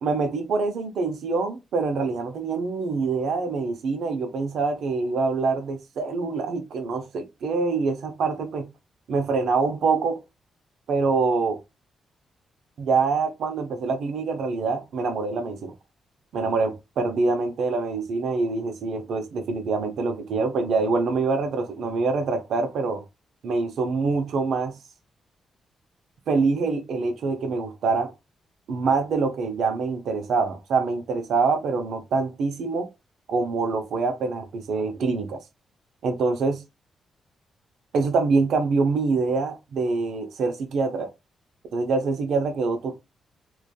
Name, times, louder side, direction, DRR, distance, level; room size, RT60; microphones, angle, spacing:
voice 1, 0.0-8.7 9.1-10.2 10.9-11.6 12.8-15.7 16.3-23.0 23.4-24.8 26.3-28.1 28.7-32.9 33.3-35.4 36.0-36.6 37.9-41.1 41.7-43.0, right 4 dB, 75° right, 0.5 m, -25 dB
2.5 x 2.3 x 2.3 m
supercardioid pair, 60°, 0 cm